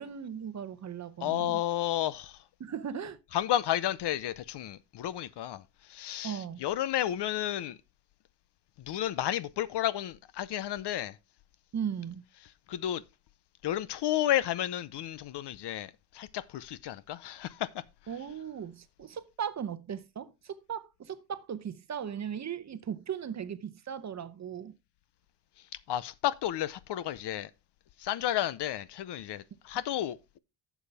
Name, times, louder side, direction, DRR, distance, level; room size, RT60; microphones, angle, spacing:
voice 1, 0.0-1.6 2.6-3.2 6.2-6.6 11.7-12.2 18.1-24.7, right 8 dB, 40° right, 0.8 m, -37 dB
voice 2, 1.2-2.4 3.3-7.8 8.8-11.2 12.7-13.0 13.6-17.8 25.9-27.5 28.0-30.4, left 12 dB, 65° left, 0.7 m, -32 dB
11.0 x 7.2 x 3.4 m
cardioid pair, 135°, 45 cm